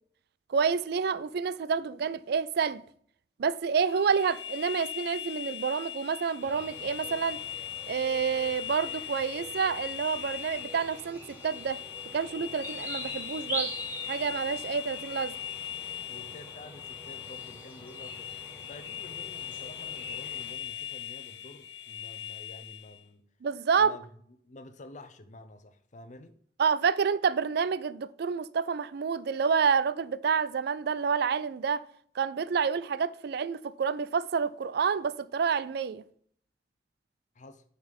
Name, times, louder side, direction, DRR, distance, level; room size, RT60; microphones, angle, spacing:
voice 1, 0.5-2.8 3.4-7.4 7.9-11.8 12.1-13.7 14.1-15.3 23.4-24.0 26.6-31.8 32.1-36.0, right 6 dB, 65° right, 0.4 m, -28 dB
sound 1, 3.8-23.0, left 11 dB, 70° left, 0.9 m, -40 dB
sound 2, 6.4-20.6, right 1 dB, 10° right, 2.8 m, -44 dB
voice 2, 16.1-18.3 18.7-23.2 23.8-24.1 24.4-26.4 37.3-37.6, left 2 dB, 45° left, 0.7 m, -49 dB
9.3 x 4.0 x 5.4 m
head